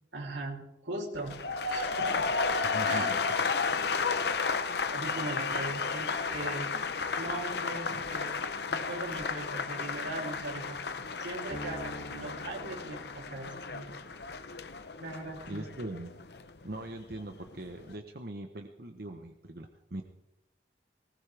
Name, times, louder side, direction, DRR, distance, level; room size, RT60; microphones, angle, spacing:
voice 1, 0.1-1.3 1.7-2.3 2.8-3.2 4.9-6.7 7.2-8.4 8.7-10.8 11.2-13.9 15.0-15.7, right 2 dB, 85° right, 0 dB, 3.4 m, -39 dB
sound 1, 1.1-17.2 17.5-17.9, left 4 dB, 60° left, 0.9 m, -33 dB
voice 2, 2.7-3.2 7.9-8.0 15.5-16.1 16.6-20.0, right 1 dB, 55° right, 4 dB, 1.0 m, -41 dB
Piano, 11.5-13.9, left 1 dB, 80° left, 2.5 m, -45 dB
19.5 x 19.0 x 3.5 m, 0.88 s
head